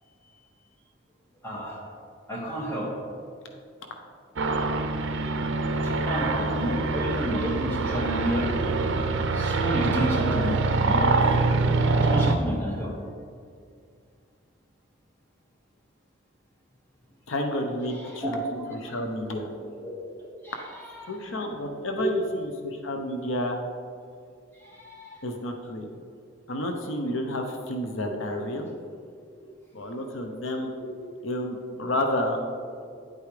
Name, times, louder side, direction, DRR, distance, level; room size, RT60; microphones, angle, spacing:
voice 1, 1.4-1.8 2.3-2.9 5.8-8.5 9.3-11.3 12.0-12.9 18.0-18.3 19.6-19.9 20.4-20.7 20.9-21.2 22.0-22.1 24.6-25.2, equal, 10° left, -4 dB, 1.8 m, -31 dB
sound 1, 4.4-12.4, right 3 dB, 75° right, 0.6 m, -24 dB
voice 2, 17.3-18.4 18.7-19.5 21.0-23.6 25.2-25.9 26.5-28.7 29.7-30.7 31.2-32.4, left 1 dB, 85° left, 4 dB, 0.8 m, -30 dB
9.9 x 8.3 x 3.3 m, 2.3 s
head